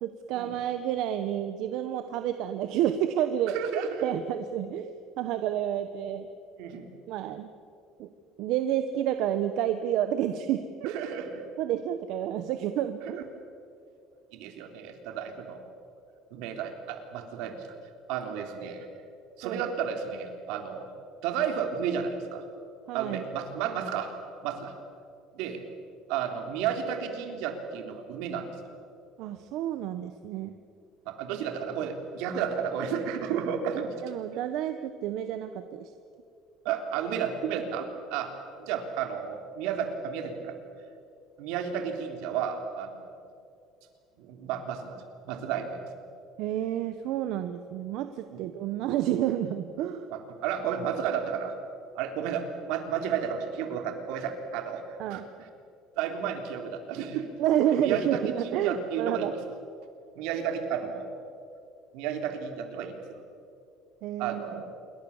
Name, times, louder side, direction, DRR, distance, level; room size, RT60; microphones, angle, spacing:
voice 1, 0.0-6.3 7.1-7.5 8.0-8.1 8.4-11.0 11.6-13.2 19.4-19.6 22.9-23.2 29.2-30.6 33.7-35.9 46.4-50.1 55.0-55.2 57.4-59.3 64.0-64.6, right 11 dB, 55° right, 9 dB, 1.1 m, -30 dB
voice 2, 3.5-4.0 6.6-6.9 10.8-11.4 13.1-13.2 14.3-15.6 16.3-17.7 18.1-18.9 19.4-20.9 21.2-22.4 22.9-24.1 24.4-24.7 25.3-25.6 26.1-28.5 31.0-33.9 36.6-38.3 38.6-40.6 41.4-43.1 44.2-45.8 48.3-48.4 50.1-51.5 51.9-55.5 56.0-57.3 57.7-59.3 60.1-61.0 61.9-63.2 64.2-64.8, right 7 dB, 75° right, 5 dB, 3.4 m, -32 dB
28.0 x 23.0 x 7.3 m, 2.5 s
cardioid pair, 175°, 0 cm